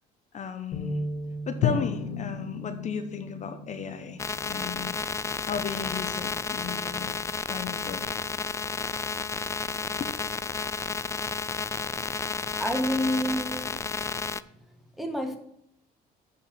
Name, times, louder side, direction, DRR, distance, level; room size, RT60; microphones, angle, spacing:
voice 1, 0.3-1.0 1.5-4.9 5.4-7.2 7.5-8.2 10.0-10.1, left 6 dB, 45° left, 1.0 m, -35 dB
sound 1, 0.7-7.0, right 1 dB, 60° left, 1.8 m, -40 dB
Drum, 1.6-5.6, left 9 dB, 85° left, 0.7 m, -34 dB
sound 2, 4.2-14.4, left 4 dB, 15° left, 0.3 m, -32 dB
voice 2, 12.6-13.9 15.0-15.4, equal, ahead, 1.6 m, -29 dB
8.3 x 4.8 x 7.0 m
cardioid pair, 110°, 17 cm